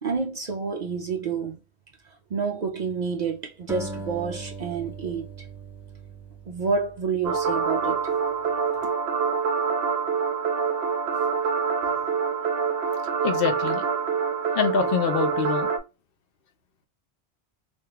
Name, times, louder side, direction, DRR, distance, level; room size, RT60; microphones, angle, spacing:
voice 1, 0.0-1.6 2.3-5.5 6.5-8.1, right 5 dB, 55° right, 0.5 m, -29 dB
Acoustic guitar, 3.7-8.1, right 3 dB, 5° right, 0.3 m, -40 dB
sound 1, 7.2-15.8, right 6 dB, 85° right, 0.8 m, -26 dB
voice 2, 13.2-13.8 14.5-15.7, left 6 dB, 65° left, 0.7 m, -25 dB
3.4 x 2.2 x 2.8 m
omnidirectional pair, 1.1 m